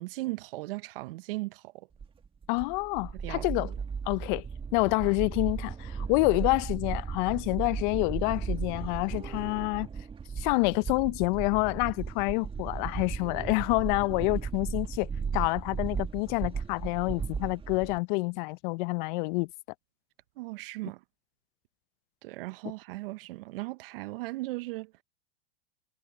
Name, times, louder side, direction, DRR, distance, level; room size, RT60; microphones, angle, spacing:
voice 1, 0.0-1.9 3.1-3.8 20.4-21.0 22.2-24.9, right 21 dB, 65° right, 1.0 m, -37 dB
sound 1, 2.0-18.0, right 6 dB, 15° right, 1.7 m, -36 dB
voice 2, 2.5-3.7 4.1-4.4 4.7-9.9 10.4-19.5, left 28 dB, 50° left, 0.6 m, -28 dB
hypercardioid pair, 115°, 31 cm